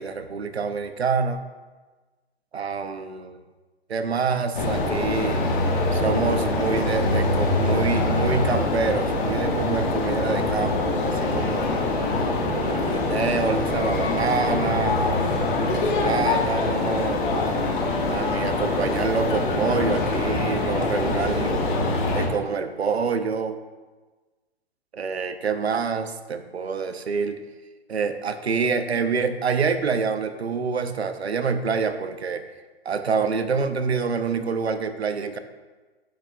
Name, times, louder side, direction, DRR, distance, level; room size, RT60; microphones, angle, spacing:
voice 1, 0.0-1.4 2.5-3.4 3.9-5.4 5.9-11.7 12.5-15.0 15.7-17.4 18.1-21.6 22.1-23.6 24.9-27.4 27.9-32.5 32.8-35.4, right 5 dB, 90° right, 10 dB, 0.7 m, -26 dB
sound 1, 4.5-22.3, left 2 dB, 55° left, 1.5 m, -24 dB
9.2 x 7.6 x 2.3 m, 1.3 s
hypercardioid pair, 120°, 31 cm